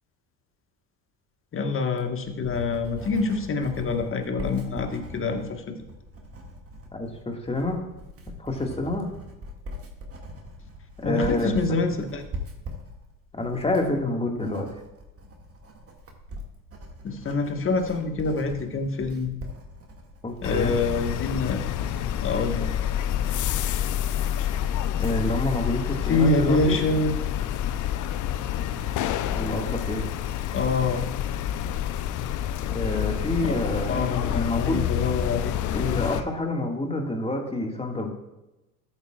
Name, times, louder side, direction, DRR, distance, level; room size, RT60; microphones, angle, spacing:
voice 1, 1.5-5.7 11.0-12.2 17.0-19.3 20.4-21.6 22.2-22.7 26.1-27.1 30.5-31.0 33.5-33.6 33.9-36.0, left 3 dB, 30° left, 5 dB, 1.5 m, -26 dB
Writing, 2.0-20.6, equal, 30° right, 2.1 m, -41 dB
voice 2, 6.9-7.8 8.4-9.1 11.0-11.8 13.3-14.7 20.2-20.8 25.0-26.8 29.3-30.1 32.7-34.9 35.7-38.1, left 2 dB, 15° left, 2 dB, 1.9 m, -28 dB
sound 1, 20.4-36.2, left 10 dB, 45° left, 0.7 m, -28 dB
13.0 x 8.7 x 2.4 m, 0.96 s
hypercardioid pair, 70°, 43 cm